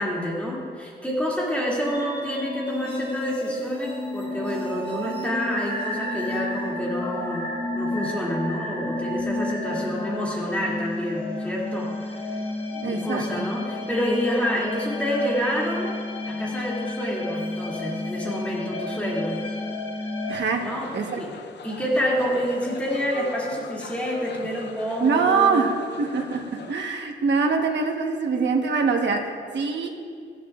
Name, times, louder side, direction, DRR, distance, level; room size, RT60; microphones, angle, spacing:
voice 1, 0.0-7.5 7.7-12.4 12.9-15.9 16.3-19.4 20.6-21.3 21.6-25.7, equal, 5° left, -5 dB, 2.5 m, -28 dB
sound 1, 1.9-20.3, left 2 dB, 30° left, 1.5 m, -31 dB
voice 2, 12.7-13.4 20.3-21.2 25.0-29.9, right 4 dB, 75° right, 3 dB, 1.2 m, -24 dB
sound 2, 20.3-26.7, left 5 dB, 70° left, 0.6 m, -41 dB
18.5 x 14.5 x 2.4 m, 2.2 s
wide cardioid pair, 160°, 19 cm